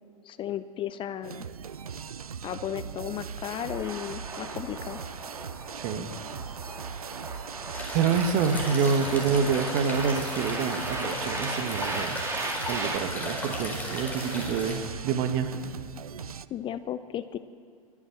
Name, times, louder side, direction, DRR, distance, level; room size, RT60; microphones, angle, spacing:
voice 1, 0.3-1.5 2.4-5.0 16.5-17.4, left 10 dB, 30° left, 13 dB, 0.6 m, -34 dB
sound 1, 1.2-16.5, right 7 dB, 80° right, 0.5 m, -40 dB
sound 2, 3.6-13.0, right 2 dB, 15° right, 2.4 m, -37 dB
voice 2, 5.7-6.1 7.0-7.1 7.9-12.2 12.7-15.6, right 6 dB, 45° right, 8 dB, 1.4 m, -27 dB
sound 3, 7.7-14.8, left 1 dB, 10° left, 4.5 m, -36 dB
22.0 x 7.4 x 6.5 m, 2.3 s
figure-of-eight pair, 85°, 18 cm